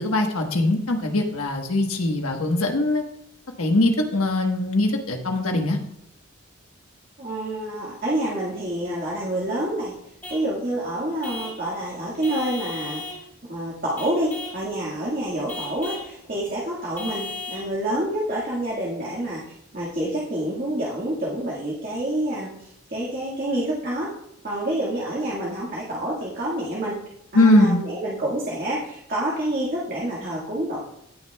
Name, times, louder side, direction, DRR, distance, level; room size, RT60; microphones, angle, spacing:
voice 1, 0.0-3.0 3.6-5.8 27.3-27.8, left 1 dB, 85° left, 4 dB, 1.3 m, -21 dB
voice 2, 7.2-9.9 10.3-13.0 13.5-19.4 19.7-24.1 24.4-27.0 27.3-30.8, right 1 dB, 40° right, -5 dB, 1.7 m, -28 dB
Vehicle horn car horn honking / Truck, 10.2-10.5 11.2-11.6 12.2-13.2 14.0-14.6 15.5-16.1 17.0-17.7, left 2 dB, 10° left, 2.7 m, -35 dB
17.5 x 6.3 x 2.3 m, 0.77 s
head